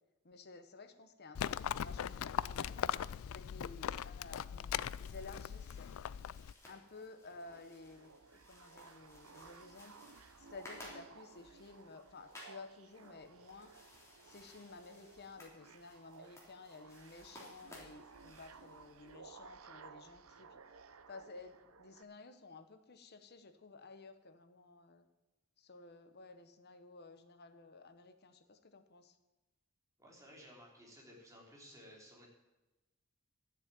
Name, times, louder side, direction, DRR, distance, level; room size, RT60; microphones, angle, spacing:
voice 1, 0.2-2.9 3.3-5.9 6.6-8.2 8.5-9.9 10.4-13.7 14.2-20.6 21.1-25.1 25.6-29.2, left 3 dB, 50° left, 9 dB, 1.1 m, -54 dB
Livestock farm animals working animals, 1.3-6.5, left 9 dB, 70° left, 0.3 m, -39 dB
sound 1, 4.3-19.1, left 1 dB, 15° left, 3.5 m, -59 dB
sound 2, 6.8-22.0, right 5 dB, 75° right, 0.7 m, -58 dB
voice 2, 30.0-32.3, equal, 15° right, -2 dB, 3.5 m, -56 dB
12.5 x 7.4 x 9.1 m, 1.1 s
head